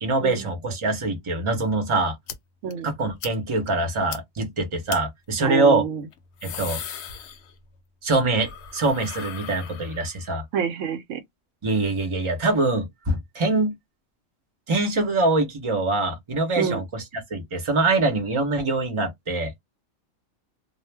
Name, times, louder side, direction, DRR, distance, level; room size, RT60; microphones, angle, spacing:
voice 1, 0.0-2.1 2.8-5.9 6.4-6.8 8.0-10.4 11.6-13.8 14.7-17.0 17.3-19.5, right 2 dB, 30° right, 0.7 m, -24 dB
sound 1, 2.3-2.4 2.7-2.8 3.2-3.3 3.7-3.8 4.1-4.2 4.9-5.0 6.1-7.8 8.1-10.3, left 8 dB, 65° left, 0.8 m, -37 dB
voice 2, 5.4-6.0 10.5-11.2 16.6-16.8, right 7 dB, 75° right, 0.9 m, -27 dB
2.4 x 2.1 x 3.3 m
omnidirectional pair, 1.4 m